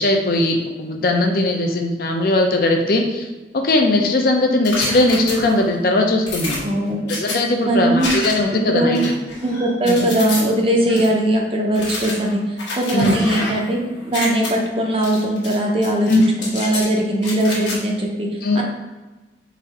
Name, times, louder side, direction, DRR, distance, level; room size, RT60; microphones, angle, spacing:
voice 1, 0.0-3.3 3.6-6.6 7.1-9.1 9.8-10.0 10.9-11.0 12.9-13.2 16.1-16.2 18.4-18.6, left 2 dB, 55° left, 3 dB, 0.5 m, -19 dB
sound 1, 4.6-5.7 6.3-7.4 8.0-8.6 8.9-10.4 11.0-11.1 11.7-13.7 14.0-14.5 15.0-15.6 15.8-16.9 17.2-17.8, left 2 dB, 85° left, 1.3 m, -28 dB
voice 2, 6.6-7.1 7.6-8.2 8.5-9.0 9.4-12.4 12.7-16.1 16.4-18.3 18.5-18.6, right 1 dB, 30° right, 0 dB, 0.6 m, -20 dB
4.1 x 2.6 x 4.1 m, 1.2 s
head